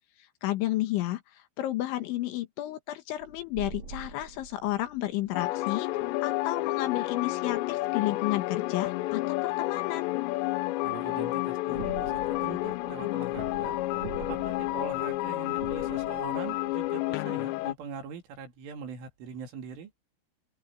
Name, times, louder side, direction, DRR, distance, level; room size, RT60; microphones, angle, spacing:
voice 1, 0.4-5.9 6.2-10.2, left 15 dB, 75° left, 3.3 m, -32 dB
sound 1, 3.2-5.7 11.7-17.3 17.6-17.7, right 4 dB, 35° right, 5.1 m, -44 dB
sound 2, 5.3-17.7, left 19 dB, 90° left, 2.4 m, -30 dB
voice 2, 10.8-13.8 14.2-19.9, right 6 dB, 70° right, 5.3 m, -42 dB
open air
omnidirectional pair, 6.0 m